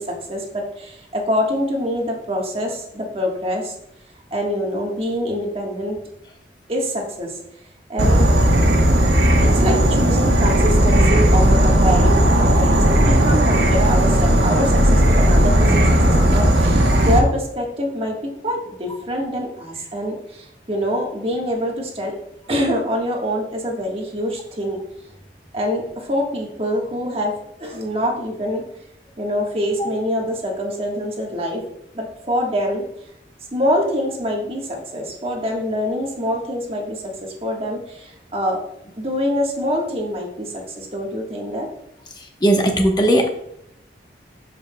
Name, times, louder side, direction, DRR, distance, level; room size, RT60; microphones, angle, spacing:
voice 1, 0.0-3.7 4.3-6.0 6.7-7.4 7.9-8.3 9.4-18.2 18.4-22.1 22.5-24.8 25.5-27.3 27.6-28.6 29.2-31.6 31.9-32.8 33.5-38.6 39.0-41.7, equal, 35° right, 0 dB, 1.3 m, -25 dB
Insect / Frog, 8.0-17.2, right 1 dB, 65° right, 1.3 m, -15 dB
voice 2, 42.4-43.3, right 1 dB, 25° left, 3 dB, 1.0 m, -17 dB
11.5 x 5.4 x 2.2 m, 0.77 s
head